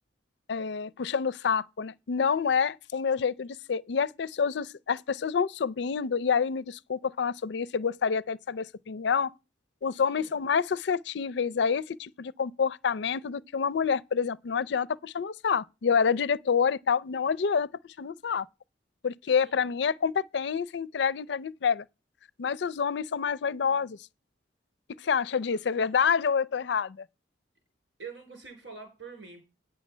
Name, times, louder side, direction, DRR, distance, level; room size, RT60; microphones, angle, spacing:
voice 1, 0.5-9.3 9.8-18.5 19.0-21.8 22.4-24.0 25.0-27.0, left 6 dB, 70° left, 0.4 m, -28 dB
voice 2, 28.0-29.4, right 5 dB, 85° right, 4.2 m, -45 dB
9.5 x 6.4 x 5.5 m
head